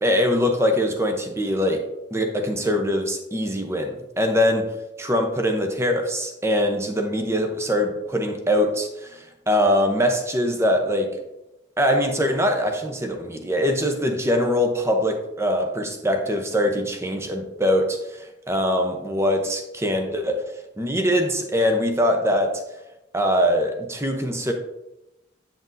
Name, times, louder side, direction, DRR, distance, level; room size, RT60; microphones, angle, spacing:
voice 1, 0.0-4.7 5.0-11.2 11.8-20.4 20.8-22.6 23.1-24.5, equal, 15° right, 4 dB, 0.8 m, -23 dB
7.8 x 7.5 x 2.6 m, 0.94 s
head